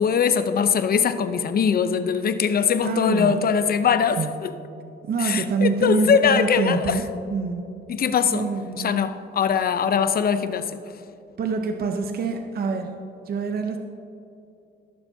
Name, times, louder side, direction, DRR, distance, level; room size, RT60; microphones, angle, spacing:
voice 1, 0.0-4.5 5.2-7.0 7.9-8.5 8.8-10.8, left 7 dB, 50° left, 11 dB, 0.7 m, -21 dB
voice 2, 2.8-3.5 4.2-4.3 5.1-7.0 7.3-7.6 8.3-9.0 11.4-13.0 13.3-13.8, right 4 dB, 50° right, 5 dB, 0.8 m, -25 dB
18.5 x 7.0 x 2.8 m, 2.8 s
cardioid pair, 90°, 20 cm